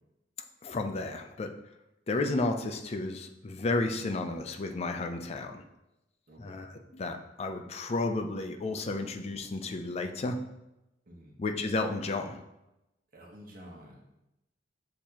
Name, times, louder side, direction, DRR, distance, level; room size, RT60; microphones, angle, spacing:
voice 1, 0.6-1.5 2.1-5.6 6.4-10.4 11.4-12.4, left 2 dB, 35° left, 4 dB, 0.4 m, -32 dB
voice 2, 6.3-6.6 11.1-11.4 13.1-14.0, equal, 55° right, -2 dB, 1.1 m, -50 dB
6.4 x 2.9 x 2.9 m, 0.90 s
head